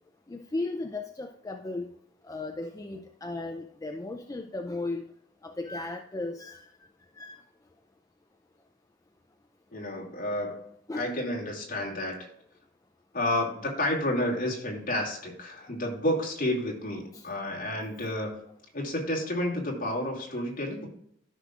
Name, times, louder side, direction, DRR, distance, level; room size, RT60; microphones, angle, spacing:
voice 1, 0.3-1.9 2.2-5.1 5.4-6.7 7.2-7.4 10.9-11.2 17.1-17.3 20.3-20.4, left 2 dB, 20° left, 4 dB, 0.4 m, -36 dB
voice 2, 9.7-10.6 10.9-12.1 13.1-18.3 18.7-20.9, left 1 dB, 45° left, -1 dB, 2.4 m, -30 dB
13.5 x 6.2 x 2.5 m, 0.69 s
head